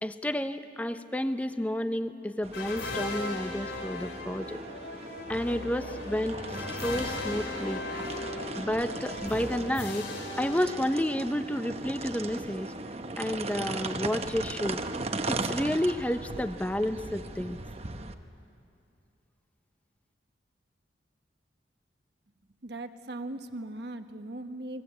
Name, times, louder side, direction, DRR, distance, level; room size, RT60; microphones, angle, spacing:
voice 1, 0.0-4.6 5.3-7.8 8.6-10.1 10.4-12.7 13.2-14.8 15.2-17.6, equal, 10° left, 10 dB, 0.6 m, -31 dB
sound 1, 2.4-18.1, right 2 dB, 35° right, 1.0 m, -38 dB
sound 2, 2.5-11.4, left 3 dB, 70° left, 3.0 m, -38 dB
voice 2, 22.6-24.8, right 1 dB, 65° right, 7 dB, 1.3 m, -39 dB
28.5 x 21.0 x 8.4 m, 2.6 s
head